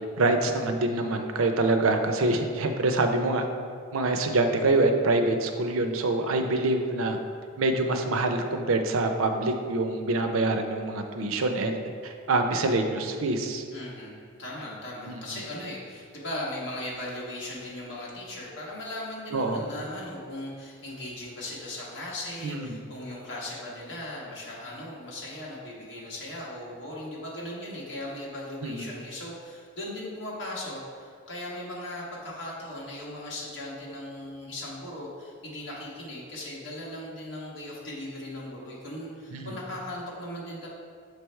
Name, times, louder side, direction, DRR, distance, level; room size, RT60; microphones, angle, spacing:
voice 1, 0.2-3.5 3.9-7.2 7.6-13.6 15.1-15.2 19.3-19.6 22.4-22.8 28.6-28.9 39.3-39.6, right 2 dB, 85° right, 6 dB, 0.5 m, -25 dB
voice 2, 13.7-40.7, left 1 dB, 60° left, -5 dB, 1.5 m, -38 dB
6.8 x 3.3 x 4.4 m, 2.2 s
head